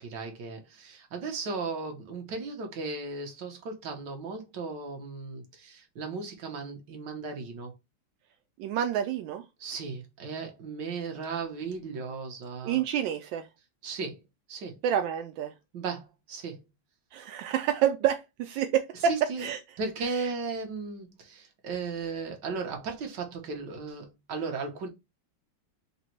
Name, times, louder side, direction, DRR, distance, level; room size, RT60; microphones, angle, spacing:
voice 1, 0.0-7.7 9.6-12.8 13.8-14.2 14.5-14.8 15.7-16.6 19.1-19.4 19.8-24.9, right 4 dB, 60° right, 1.5 m, -36 dB
voice 2, 8.6-9.4 12.6-13.5 14.8-15.5 17.1-19.6 20.1-20.3, right 9 dB, 75° right, 1.1 m, -28 dB
3.9 x 2.3 x 4.4 m
omnidirectional pair, 2.4 m